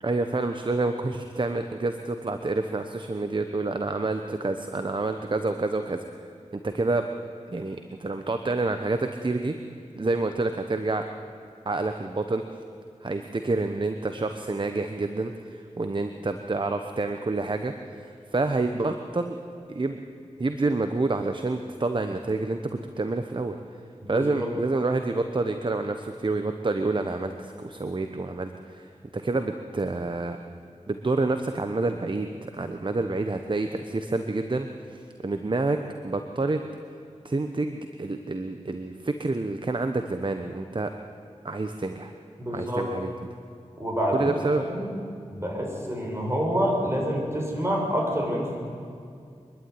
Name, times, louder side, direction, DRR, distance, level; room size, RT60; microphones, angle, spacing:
voice 1, 0.0-6.0 6.5-7.1 7.5-9.6 10.0-11.0 11.6-12.4 13.0-19.4 19.7-20.0 20.4-23.6 24.1-30.4 30.9-36.6 37.2-40.9 41.4-42.1 42.5-43.1 44.1-44.9, right 3 dB, 40° right, 7 dB, 1.0 m, -28 dB
voice 2, 42.4-42.9 43.8-44.9 45.3-48.7, equal, 20° right, -1 dB, 6.7 m, -27 dB
24.5 x 11.5 x 9.5 m, 2.3 s
cardioid pair, 45°, 12 cm